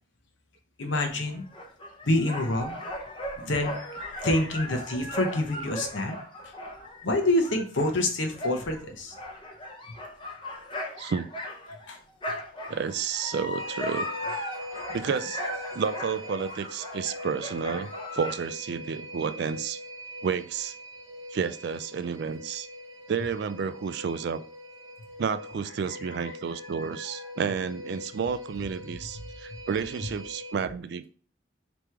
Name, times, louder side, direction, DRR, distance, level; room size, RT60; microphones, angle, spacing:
voice 1, 0.8-1.4 2.1-2.8 3.4-6.2 7.0-9.1 11.9-12.0 26.9-27.0, left 1 dB, 80° left, 4 dB, 0.9 m, -27 dB
sound 1, 0.9-11.9 12.2-18.4, left 1 dB, 25° left, 0.8 m, -37 dB
voice 2, 12.7-14.1 14.9-15.4 15.7-19.8 20.2-20.7 21.3-22.7 23.1-24.4 25.2-31.1, right 6 dB, 60° right, 13 dB, 0.3 m, -31 dB
sound 2, 13.6-30.5, equal, 80° right, 1.0 m, -42 dB
3.5 x 3.0 x 4.5 m, 0.42 s
head